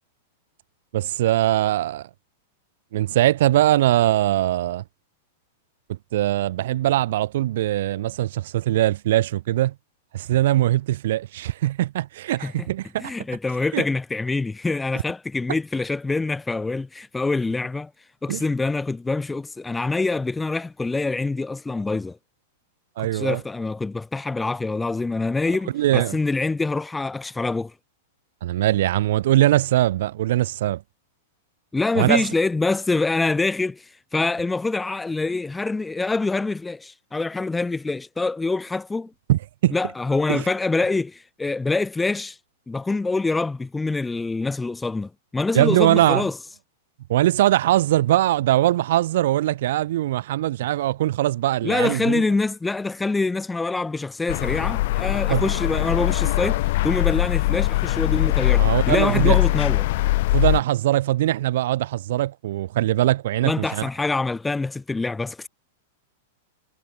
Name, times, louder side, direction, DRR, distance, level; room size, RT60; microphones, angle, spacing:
voice 1, 0.9-2.0 2.9-4.8 6.1-9.7 10.1-13.1 13.7-13.8 18.3-18.4 23.0-23.4 25.7-26.1 28.4-30.8 31.9-32.2 39.3-39.7 40.3-40.4 45.5-46.2 47.1-52.2 55.3-55.4 58.6-59.4 60.3-63.8, right 14 dB, 65° right, 1.5 m, -21 dB
voice 2, 13.0-17.9 18.2-22.2 23.0-27.7 31.7-39.1 39.7-42.4 42.7-46.4 51.6-59.9 63.4-65.5, left 3 dB, 10° left, 0.4 m, -25 dB
sound 1, 54.3-60.6, left 18 dB, 60° left, 0.7 m, -21 dB
hypercardioid pair, 115°, 0 cm